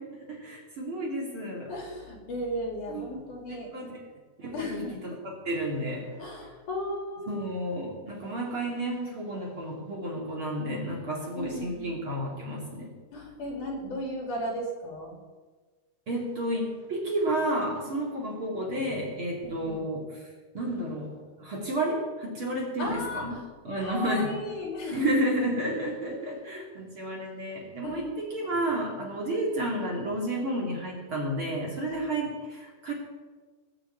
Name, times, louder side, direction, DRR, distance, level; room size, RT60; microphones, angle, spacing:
voice 1, 0.2-1.7 2.9-3.2 3.5-3.9 4.4-6.1 7.3-12.9 16.1-20.1 20.5-21.1 21.4-23.3 23.6-24.3 24.9-32.9, right 1 dB, 35° right, -2 dB, 3.2 m, -31 dB
voice 2, 1.7-3.9 4.5-5.0 6.2-7.4 11.3-12.0 13.1-15.2 19.4-19.8 22.8-23.4 23.8-25.5 27.8-28.1 31.9-32.1, left 1 dB, 55° left, 1 dB, 3.9 m, -35 dB
20.5 x 6.9 x 8.7 m, 1.4 s
omnidirectional pair, 4.4 m